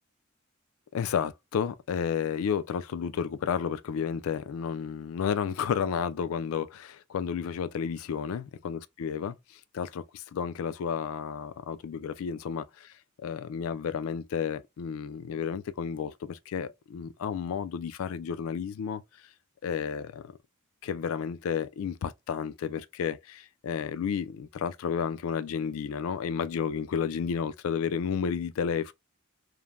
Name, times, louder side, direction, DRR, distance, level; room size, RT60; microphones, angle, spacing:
voice 1, 0.9-12.6 13.2-19.0 19.6-20.3 20.8-28.9, left 7 dB, 85° left, 0.3 m, -32 dB
3.1 x 2.1 x 2.3 m
head